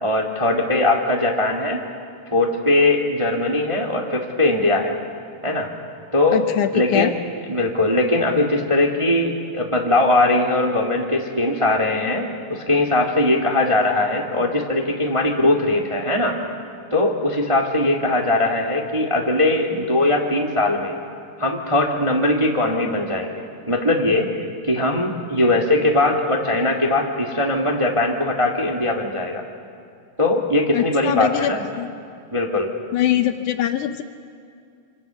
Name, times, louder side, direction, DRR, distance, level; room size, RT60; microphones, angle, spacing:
voice 1, 0.0-1.8 2.3-4.9 5.4-5.7 6.1-6.4 6.7-7.2 7.5-16.4 16.9-20.9 21.4-24.3 24.6-29.4 30.2-31.6 32.3-32.7, left 2 dB, 15° right, 0 dB, 1.1 m, -20 dB
voice 2, 6.3-7.1 30.7-31.9 32.9-34.0, left 11 dB, 75° left, 8 dB, 2.0 m, -22 dB
26.0 x 25.5 x 7.0 m, 2.5 s
omnidirectional pair, 3.9 m